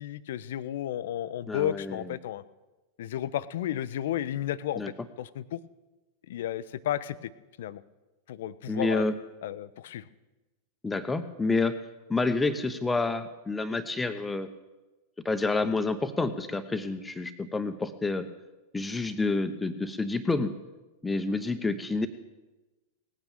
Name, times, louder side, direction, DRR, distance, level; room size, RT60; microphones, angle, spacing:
voice 1, 0.0-2.4 3.0-4.8 5.2-5.6 6.3-7.3 7.6-7.8 8.3-9.1 9.4-10.0, left 11 dB, 55° left, 16 dB, 0.6 m, -33 dB
voice 2, 1.5-2.0 4.8-4.9 8.7-9.1 10.8-11.8 12.1-14.5 15.2-18.3 18.7-20.5 21.0-22.1, left 3 dB, 10° left, 10 dB, 0.9 m, -28 dB
18.5 x 9.0 x 7.1 m, 1.1 s
figure-of-eight pair, 90°, 0 cm